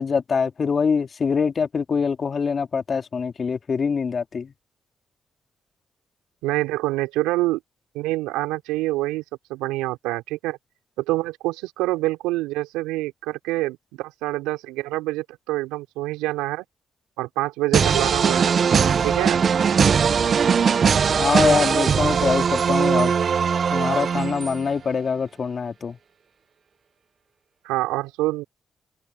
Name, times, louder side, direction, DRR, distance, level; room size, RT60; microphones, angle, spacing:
voice 1, 0.0-4.5 21.2-23.1 23.7-26.0, left 5 dB, 50° left, 3.4 m, -24 dB
voice 2, 6.4-7.6 7.9-9.2 9.5-10.6 11.0-16.6 17.2-19.4 27.6-28.4, right 18 dB, 85° right, 3.2 m, -26 dB
sound 1, 17.7-24.7, right 6 dB, 55° right, 0.7 m, -20 dB
open air
hypercardioid pair, 40°, 0 cm